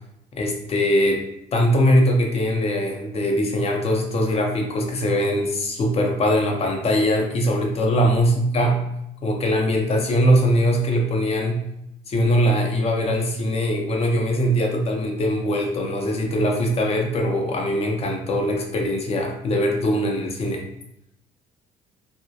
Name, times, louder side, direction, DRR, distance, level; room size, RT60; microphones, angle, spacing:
voice 1, 0.3-1.2 1.5-8.8 9.2-11.6 12.1-20.6, equal, 35° left, 1 dB, 0.5 m, -21 dB
2.3 x 2.1 x 2.6 m, 0.81 s
cardioid pair, 110°, 17 cm